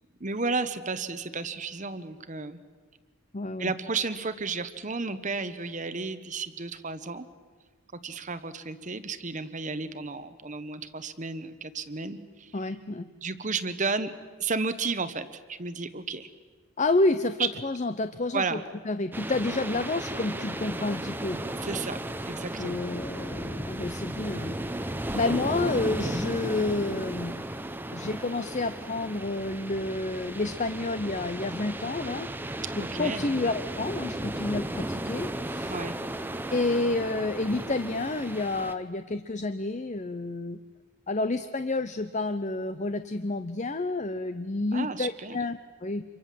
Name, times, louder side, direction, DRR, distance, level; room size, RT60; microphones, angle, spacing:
voice 1, 0.2-2.6 3.6-7.3 8.0-12.6 13.2-14.1 14.4-16.3 17.4-17.5 18.3-18.6 21.6-22.0 22.3-22.8 25.1-25.2 32.8-33.3 35.7-36.0 44.7-45.4, right 4 dB, 35° right, 11 dB, 1.0 m, -32 dB
voice 2, 3.3-3.7 12.5-13.1 16.8-18.6 18.9-21.4 22.6-24.6 25.1-27.6 27.9-32.3 32.8-35.7 36.5-40.6 41.1-46.0, left 2 dB, 30° left, 11 dB, 0.7 m, -29 dB
sound 1, 19.1-38.7, right 1 dB, 10° right, 0.8 m, -35 dB
27.5 x 24.0 x 7.6 m, 1.4 s
head